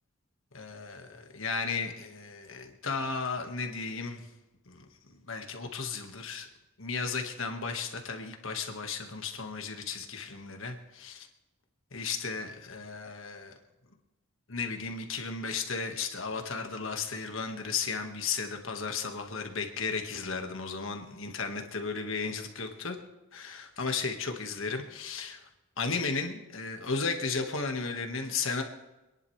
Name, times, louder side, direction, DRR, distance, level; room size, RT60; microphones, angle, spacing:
voice 1, 0.5-4.3 4.7-6.5 6.8-11.3 11.9-13.5 14.5-23.0 23.3-25.4 25.8-28.6, left 4 dB, 65° left, 4 dB, 1.6 m, -34 dB
26.5 x 11.0 x 3.3 m, 1.0 s
head